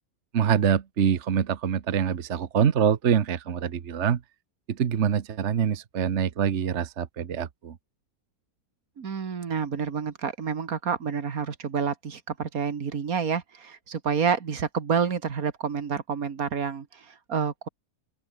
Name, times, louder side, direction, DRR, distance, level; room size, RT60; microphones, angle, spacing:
voice 1, 0.3-4.2 4.7-7.7, right 8 dB, 55° right, 1.3 m, -25 dB
voice 2, 9.0-17.7, right 6 dB, 75° right, 2.2 m, -29 dB
open air
omnidirectional pair, 1.5 m